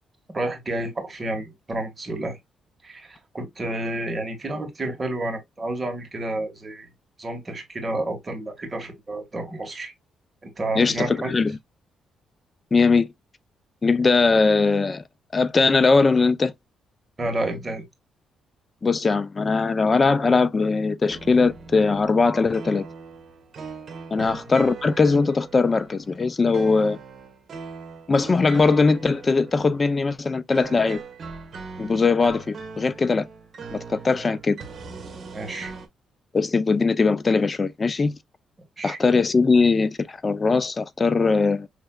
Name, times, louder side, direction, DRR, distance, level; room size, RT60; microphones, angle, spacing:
voice 1, 0.3-2.4 2.8-6.9 7.2-9.9 10.4-11.3 17.2-17.9 24.2-24.3 35.3-35.7 38.8-39.0, right 2 dB, 25° right, 1.6 m, -30 dB
voice 2, 10.8-11.5 12.7-13.1 13.8-15.0 15.3-16.5 18.8-22.9 24.1-27.0 28.1-31.0 31.8-33.3 33.7-34.6 36.3-38.2 38.8-41.7, left 4 dB, 30° left, 0.5 m, -20 dB
sound 1, 21.1-35.9, right 5 dB, 50° right, 1.3 m, -41 dB
5.8 x 3.2 x 2.3 m
cardioid pair, 105°, 0 cm